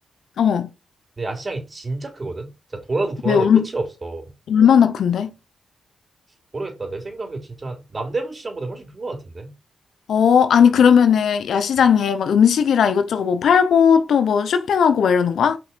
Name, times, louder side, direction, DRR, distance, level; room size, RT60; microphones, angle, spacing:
voice 1, 0.4-0.7 3.3-3.7 4.5-5.3 10.1-15.6, left 7 dB, 75° left, 0.8 m, -16 dB
voice 2, 1.2-4.3 6.5-9.5, right 3 dB, 35° right, 3.5 m, -29 dB
6.0 x 5.2 x 4.6 m
supercardioid pair, 50°, 0 cm